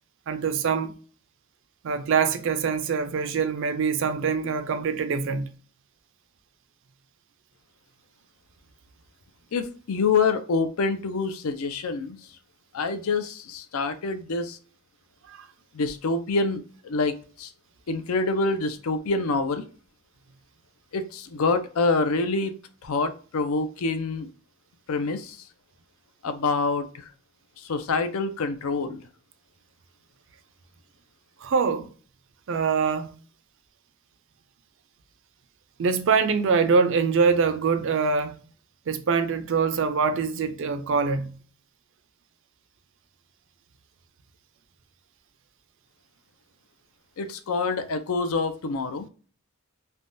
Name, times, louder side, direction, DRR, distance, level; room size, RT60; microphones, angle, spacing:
voice 1, 0.3-0.9 1.8-5.5 15.3-15.4 31.4-31.9 32.5-33.2 35.8-38.4 38.9-41.4, right 5 dB, 60° right, 0.4 m, -24 dB
voice 2, 9.5-12.2 12.7-14.6 15.7-17.5 17.9-19.6 20.9-22.5 22.8-24.3 24.9-25.5 26.2-27.1 27.6-29.0 47.2-49.1, left 3 dB, 75° left, 0.5 m, -26 dB
3.3 x 2.2 x 2.5 m
head